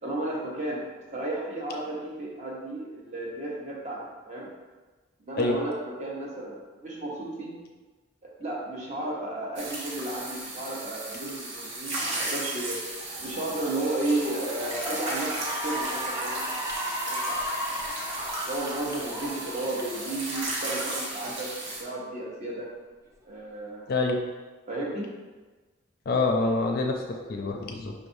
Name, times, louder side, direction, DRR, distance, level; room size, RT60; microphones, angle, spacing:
voice 1, 0.0-0.8 1.1-4.0 4.3-4.5 5.2-7.6 8.2-12.8 13.2-16.4 17.1-17.4 18.4-21.5 21.8-22.7 23.2-23.9 24.7-25.1, right 2 dB, 35° right, -3 dB, 0.8 m, -33 dB
sound 1, 9.6-21.8, right 2 dB, 65° right, 0.8 m, -35 dB
Cheering / Applause, 14.5-21.1, equal, 15° right, 0.4 m, -35 dB
voice 2, 23.9-24.2 26.1-27.9, left 3 dB, 50° left, 2 dB, 0.4 m, -26 dB
5.1 x 3.2 x 2.6 m, 1.3 s
head